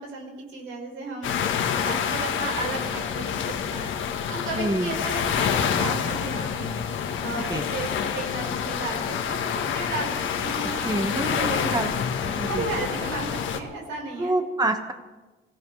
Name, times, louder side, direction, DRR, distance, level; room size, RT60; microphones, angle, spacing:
voice 1, 0.0-1.4 1.8-3.9 4.3-6.7 7.2-11.9 12.5-14.3, right 3 dB, 90° right, 0 dB, 5.1 m, -34 dB
sound 1, 1.2-13.6, left 7 dB, 80° left, 1.4 m, -27 dB
voice 2, 4.5-5.0 7.5-7.6 10.6-11.9 12.2-12.7 14.2-14.9, right 2 dB, 20° right, 5 dB, 1.6 m, -27 dB
24.5 x 16.0 x 3.4 m, 1.2 s
cardioid pair, 90°, 20 cm